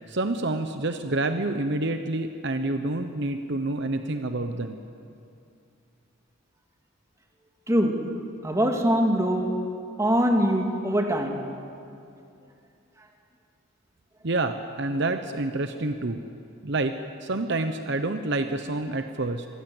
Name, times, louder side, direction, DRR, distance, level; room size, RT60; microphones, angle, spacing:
voice 1, 0.1-4.8 14.2-16.2 16.6-19.5, right 2 dB, 55° right, 8 dB, 1.0 m, -28 dB
voice 2, 7.7-8.0 8.4-9.5 10.0-11.4, equal, 15° right, 2 dB, 2.3 m, -23 dB
26.0 x 19.5 x 8.0 m, 2.5 s
head